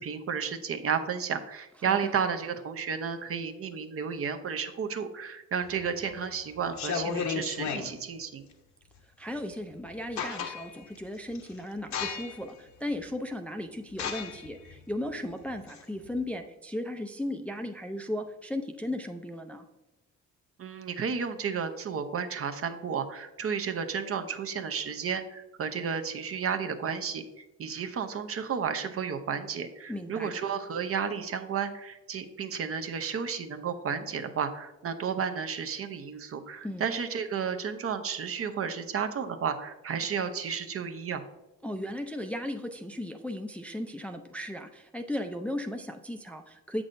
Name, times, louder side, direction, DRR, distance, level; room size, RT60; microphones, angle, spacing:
voice 1, 0.0-8.4 20.6-41.2, right 6 dB, 50° right, 8 dB, 0.7 m, -32 dB
sound 1, 5.7-6.1 6.6-7.9 9.5-9.6 9.9-10.8 11.3-11.5 11.9-12.5 13.0-13.1 13.9-16.2, left 6 dB, 65° left, 0.9 m, -34 dB
voice 2, 9.2-19.7 29.9-30.3 36.6-36.9 41.6-46.8, left 1 dB, 5° left, 5 dB, 0.4 m, -36 dB
7.2 x 6.1 x 2.6 m, 1.0 s
cardioid pair, 90°, 30 cm